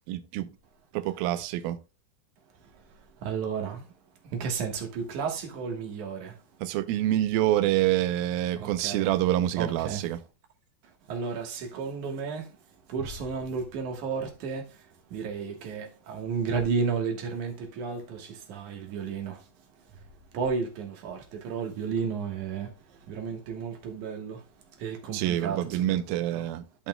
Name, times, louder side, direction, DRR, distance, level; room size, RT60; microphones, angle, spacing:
voice 1, 0.1-0.5 0.9-1.8 6.6-10.2 25.1-26.9, right 13 dB, 80° right, 2.3 m, -27 dB
voice 2, 3.2-3.8 4.2-6.4 8.6-9.1 9.5-10.0 11.1-12.5 12.9-14.8 15.1-19.4 20.3-22.7 23.1-24.4 24.8-26.4, right 5 dB, 60° right, 2.4 m, -33 dB
13.0 x 5.6 x 2.2 m
omnidirectional pair, 4.6 m